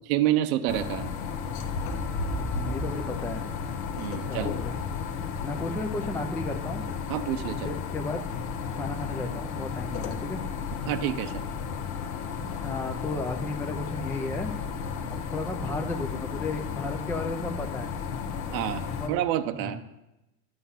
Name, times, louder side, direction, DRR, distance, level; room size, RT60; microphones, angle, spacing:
voice 1, 0.1-1.1 4.0-4.5 7.1-7.7 10.9-11.4 18.5-19.8, right 12 dB, 85° right, 7 dB, 0.8 m, -28 dB
sound 1, 0.7-19.1, left 6 dB, 90° left, 1.2 m, -33 dB
voice 2, 2.3-3.5 4.2-4.8 5.1-6.8 7.6-8.2 8.7-10.4 12.6-14.5 15.1-18.0 18.9-19.2 19.5-19.8, left 2 dB, 5° left, 3 dB, 0.3 m, -34 dB
11.5 x 7.9 x 5.6 m, 0.94 s
cardioid pair, 160°, 41 cm